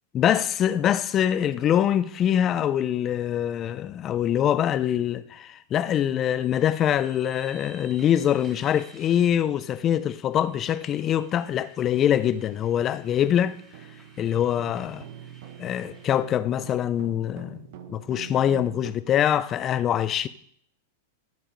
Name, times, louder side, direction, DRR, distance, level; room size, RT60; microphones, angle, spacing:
voice 1, 0.1-13.6 14.2-15.1 15.6-20.3, left 10 dB, 25° left, 0.4 m, -24 dB
sound 1, 6.3-16.2, right 3 dB, 10° right, 1.6 m, -54 dB
sound 2, 8.9-9.1 9.5-18.9, right 10 dB, 50° right, 0.9 m, -46 dB
12.5 x 5.0 x 5.3 m
supercardioid pair, 160°, 0 cm